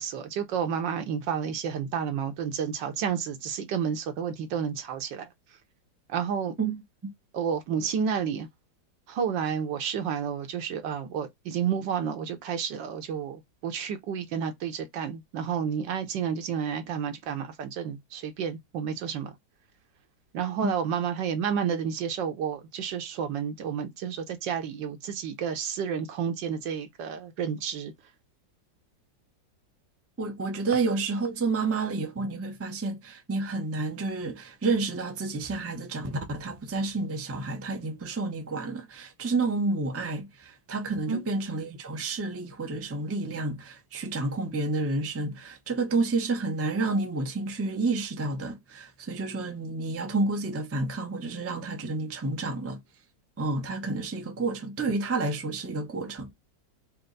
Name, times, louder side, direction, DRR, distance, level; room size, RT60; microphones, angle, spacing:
voice 1, 0.0-5.3 6.1-6.6 7.3-8.5 9.1-19.3 20.3-27.9 41.1-41.2, right 7 dB, 75° right, 1.6 m, -30 dB
voice 2, 30.2-52.8 53.4-56.3, right 3 dB, 20° right, 0.3 m, -30 dB
4.5 x 2.2 x 3.8 m
omnidirectional pair, 2.0 m